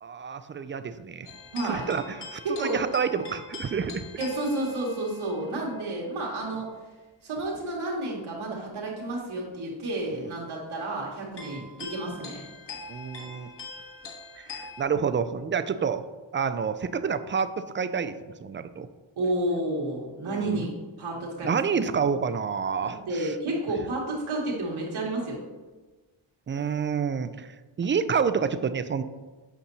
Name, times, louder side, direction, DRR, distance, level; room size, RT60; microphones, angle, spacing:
voice 1, 0.0-1.3 1.6-4.1 10.1-10.3 11.5-11.7 12.9-13.5 14.4-16.0 16.3-18.9 20.3-20.6 21.4-23.3 26.5-29.0, right 6 dB, 25° right, 12 dB, 0.3 m, -29 dB
sound 1, 1.3-5.7 7.4-7.6 9.5-9.6 11.3-14.8, left 3 dB, 55° left, 1.5 m, -43 dB
voice 2, 1.5-1.9 2.4-2.8 4.2-6.7 7.2-12.4 19.2-20.7 21.0-21.6 22.8-25.4, right 2 dB, 75° right, -4 dB, 2.2 m, -31 dB
8.4 x 5.3 x 2.8 m, 1.3 s
cardioid pair, 65°, 49 cm